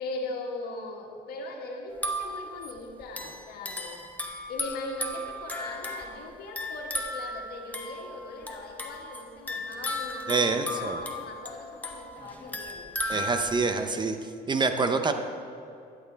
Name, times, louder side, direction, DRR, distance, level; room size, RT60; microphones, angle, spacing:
voice 1, 0.0-4.0 4.5-12.9, left 2 dB, 70° left, 1 dB, 1.7 m, -39 dB
sound 1, 1.9-13.8, left 1 dB, 10° left, 0.9 m, -36 dB
voice 2, 10.3-11.0 13.1-14.2 14.5-15.1, right 4 dB, 25° right, 7 dB, 0.6 m, -26 dB
13.0 x 9.1 x 3.4 m, 2.5 s
cardioid pair, 110°, 17 cm